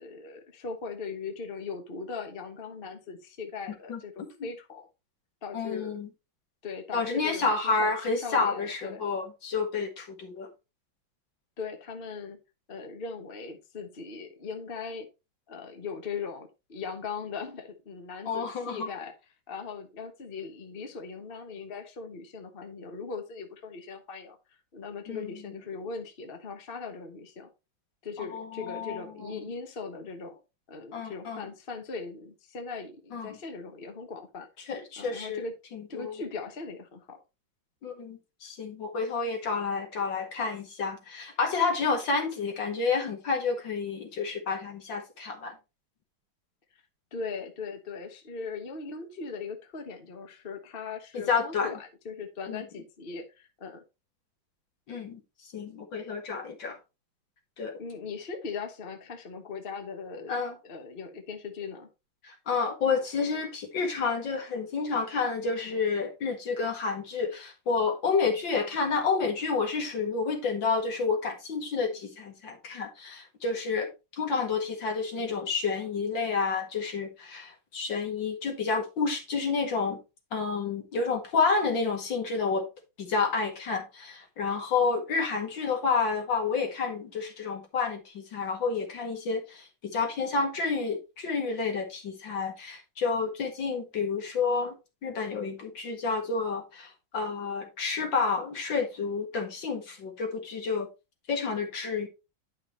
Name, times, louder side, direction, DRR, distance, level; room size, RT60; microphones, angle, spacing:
voice 1, 0.0-4.9 5.4-5.9 6.6-9.1 11.6-12.4 12.7-15.1 15.5-19.1 19.5-24.4 24.7-27.5 28.0-30.4 30.7-34.5 35.0-35.5 35.9-37.2 47.1-53.8 57.8-60.4 60.6-61.9, left 5 dB, 35° left, 1.1 m, -39 dB
voice 2, 5.5-6.1 6.9-10.5 18.3-18.9 25.1-25.3 28.2-29.4 30.9-31.4 33.1-33.4 34.7-35.4 35.7-36.1 37.8-45.5 51.1-51.7 52.5-52.6 54.9-55.2 55.5-56.8 57.6-57.7 60.3-60.5 62.2-80.0 80.3-82.7 83.0-94.8 95.0-100.9 101.3-102.1, left 4 dB, 65° left, 2.4 m, -30 dB
10.5 x 5.8 x 3.2 m
omnidirectional pair, 2.2 m